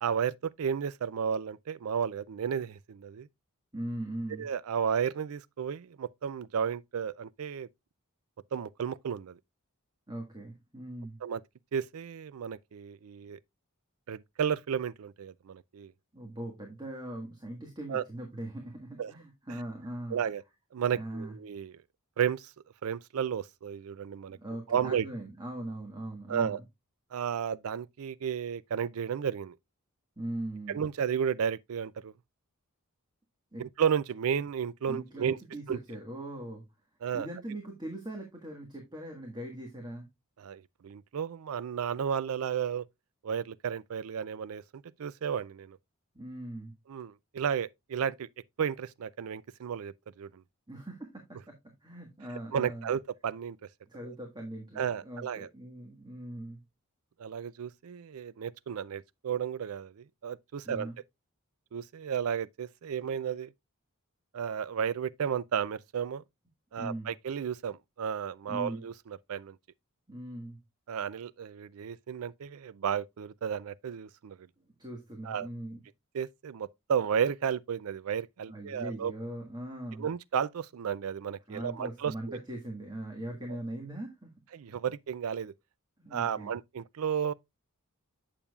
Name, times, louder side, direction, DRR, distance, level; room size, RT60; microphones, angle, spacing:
voice 1, 0.0-3.3 4.4-7.7 8.5-9.4 11.2-11.4 11.7-13.4 14.1-15.9 17.9-18.0 19.0-19.1 20.1-20.4 20.7-21.7 22.2-22.5 22.8-24.4 24.7-25.1 26.3-26.6 27.1-29.6 30.7-32.1 33.6-35.4 35.7-35.8 37.0-37.3 40.4-42.9 43.2-45.8 46.9-48.3 48.6-50.4 52.5-53.6 54.0-54.1 54.8-55.5 57.2-60.9 61.7-63.5 64.3-66.2 66.7-68.9 69.3-69.6 70.9-74.4 75.3-75.5 76.1-79.1 80.0-82.4 84.5-85.5 86.1-87.3, right 7 dB, 70° right, 0.4 m, -33 dB
voice 2, 3.7-4.5 10.1-11.2 16.1-20.2 20.9-21.3 24.3-26.6 30.2-30.8 33.5-33.6 34.9-36.6 37.1-40.1 46.1-46.7 50.7-51.6 51.8-52.9 53.9-56.6 60.6-60.9 66.8-67.1 68.5-68.8 70.1-70.6 74.8-75.8 78.5-80.1 81.5-84.3 84.7-84.8 86.0-86.5, right 1 dB, 20° right, 1.5 m, -40 dB
8.7 x 6.9 x 2.3 m
head